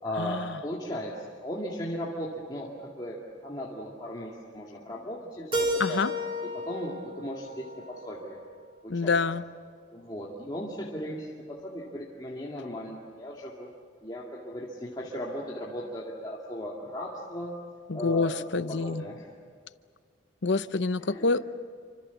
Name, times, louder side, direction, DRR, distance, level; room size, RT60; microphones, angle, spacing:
voice 1, 0.0-6.0 6.4-8.4 8.8-9.2 9.9-13.7 14.0-17.5 17.9-19.3 21.0-21.4, equal, 20° left, -4 dB, 2.4 m, -37 dB
Keyboard (musical), 5.5-8.4, equal, 25° right, 3.4 m, -33 dB
voice 2, 5.8-6.1 8.9-9.4 17.9-19.0 20.4-21.4, left 4 dB, 65° left, 13 dB, 0.8 m, -27 dB
29.0 x 26.0 x 7.2 m, 2.1 s
head